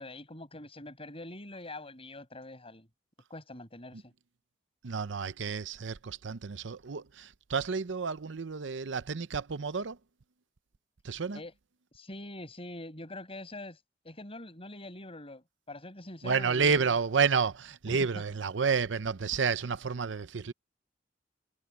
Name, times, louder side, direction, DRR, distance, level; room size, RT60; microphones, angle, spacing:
voice 1, 0.0-2.9 3.3-4.1 11.3-11.5 11.9-16.9 17.9-18.0, left 1 dB, 30° left, 6.4 m, -44 dB
voice 2, 4.8-10.0 11.0-11.4 16.2-20.5, right 5 dB, 75° right, 0.7 m, -30 dB
head